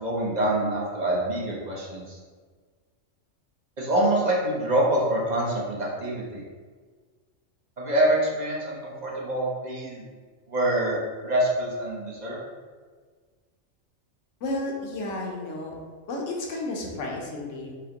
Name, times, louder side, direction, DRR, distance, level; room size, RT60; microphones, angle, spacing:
voice 1, 0.0-2.2 3.8-6.4 7.8-10.0 10.5-12.4, right 1 dB, 40° right, -4 dB, 0.8 m, -25 dB
voice 2, 14.4-15.7 16.1-17.7, left 2 dB, 65° left, -1 dB, 1.1 m, -32 dB
5.0 x 3.0 x 2.9 m, 1.5 s
omnidirectional pair, 1.4 m